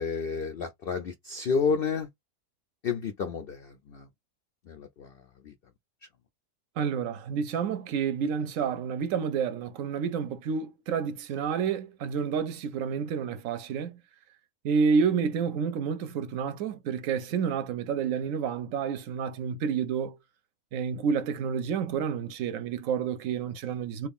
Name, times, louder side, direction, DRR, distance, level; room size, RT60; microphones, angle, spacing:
voice 1, 0.0-2.1 2.8-4.1 4.7-5.1 5.4-5.5, left 5 dB, 70° left, 0.5 m, -30 dB
voice 2, 6.8-13.9 14.6-20.2 20.7-24.1, right 6 dB, 65° right, 0.9 m, -29 dB
3.0 x 2.3 x 3.5 m
omnidirectional pair, 1.6 m